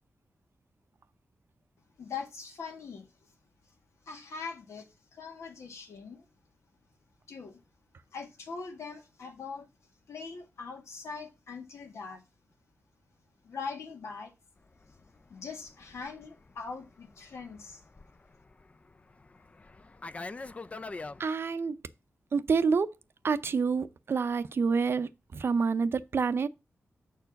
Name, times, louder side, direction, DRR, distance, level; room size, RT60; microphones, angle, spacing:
voice 1, 2.0-3.1 4.1-6.3 7.3-7.6 8.1-9.7 10.1-12.2 13.4-14.3 15.3-17.8, left 5 dB, 90° left, 1.9 m, -42 dB
Fixed-wing aircraft airplane, 14.7-21.2, left 3 dB, 30° left, 0.4 m, -45 dB
voice 2, 21.2-21.8 22.3-22.9 23.2-26.5, right 5 dB, 55° right, 0.6 m, -28 dB
6.8 x 4.6 x 6.3 m
wide cardioid pair, 125°, 5 cm